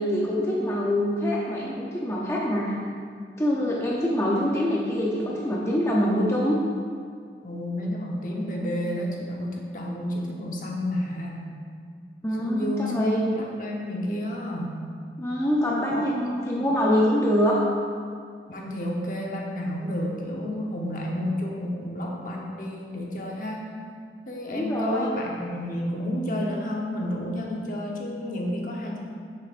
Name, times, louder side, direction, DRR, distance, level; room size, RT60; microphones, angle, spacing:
voice 1, 0.0-2.7 3.4-6.6 12.2-13.2 15.2-17.6 24.5-25.1, equal, 15° left, -5 dB, 0.6 m, -24 dB
voice 2, 7.4-11.5 12.4-14.8 15.9-16.3 18.5-23.7 24.3-29.0, left 1 dB, 45° left, -1 dB, 1.0 m, -31 dB
8.6 x 6.7 x 2.5 m, 2.2 s
head